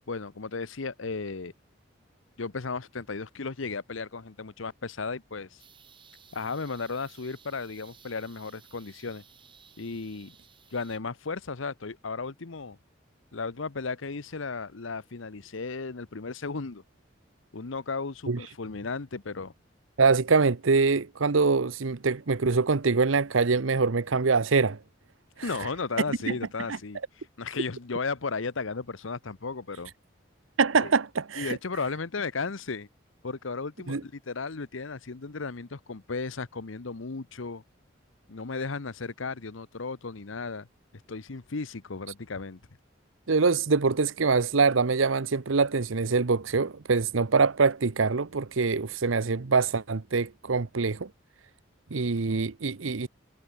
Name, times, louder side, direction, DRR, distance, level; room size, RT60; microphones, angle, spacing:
voice 1, 0.1-1.5 2.4-5.6 6.3-9.2 9.8-10.3 10.7-12.8 13.3-16.8 17.5-19.5 25.4-27.0 27.4-29.9 30.8-30.9 31.4-32.9 33.2-37.6 38.3-40.7 41.1-42.6, left 4 dB, 85° left, 0.9 m, -35 dB
sound 1, 5.6-11.0, right 7 dB, 25° right, 7.0 m, -56 dB
voice 2, 20.0-24.8 25.4-25.7 26.7-26.8 30.6-31.6 33.9-34.0 43.3-51.1 51.9-53.1, right 4 dB, 85° right, 0.8 m, -24 dB
head